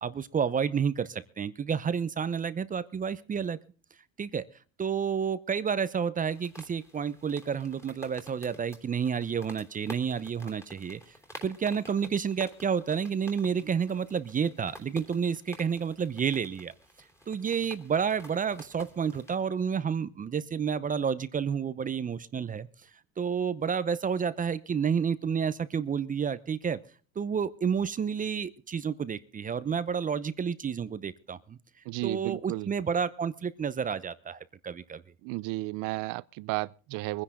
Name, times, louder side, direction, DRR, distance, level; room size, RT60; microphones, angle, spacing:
voice 1, 0.0-3.6 4.2-4.5 4.8-11.1 11.4-16.7 17.3-22.7 23.2-26.8 27.2-31.6 32.0-35.0, right 7 dB, 25° right, 0.8 m, -30 dB
sound 1, 6.3-19.3, equal, 10° left, 3.2 m, -51 dB
voice 2, 31.9-32.7 35.2-37.2, right 21 dB, 70° right, 0.7 m, -33 dB
23.5 x 10.5 x 3.7 m
cardioid pair, 130°, 33 cm